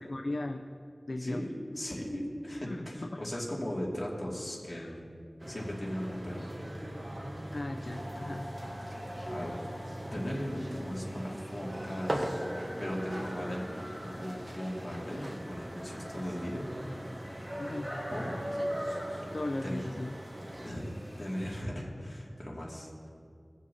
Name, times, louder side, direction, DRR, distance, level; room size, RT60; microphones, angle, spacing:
voice 1, 0.1-0.7 1.1-1.4 2.7-3.4 4.7-5.0 7.5-8.4 17.6-17.9 19.3-20.1, left 2 dB, 65° left, 5 dB, 0.4 m, -37 dB
voice 2, 1.2-5.1 5.5-6.4 9.3-9.6 10.1-12.3 12.8-13.7 14.0-16.6 17.3-17.4 18.1-18.3 19.6-19.8 20.6-23.1, equal, 45° left, -4 dB, 2.3 m, -38 dB
sound 1, 5.4-20.7, equal, 40° right, 1.1 m, -40 dB
sound 2, 7.8-21.6, equal, 10° right, 1.9 m, -44 dB
19.0 x 7.4 x 2.8 m, 2.4 s
wide cardioid pair, 55°, 0 cm